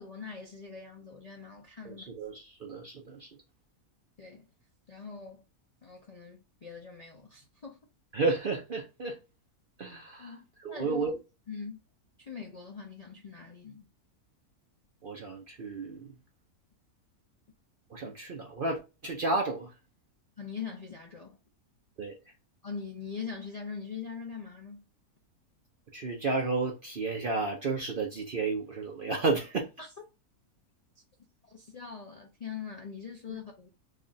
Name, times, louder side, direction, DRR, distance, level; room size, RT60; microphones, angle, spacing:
voice 1, 0.0-2.1 4.2-4.4 4.9-5.4 5.8-7.8 10.2-11.1 11.5-11.8 12.2-13.9 18.0-18.1 20.4-21.4 22.6-24.8 29.8-29.9 31.5-33.7, left 6 dB, 45° left, 0.5 m, -42 dB
voice 2, 1.8-3.3 8.1-9.2 9.8-10.3 10.6-11.1 15.0-16.1 17.9-19.7 22.0-22.1 25.9-29.7, right 3 dB, 55° right, 0.6 m, -32 dB
3.3 x 2.4 x 3.9 m
omnidirectional pair, 1.6 m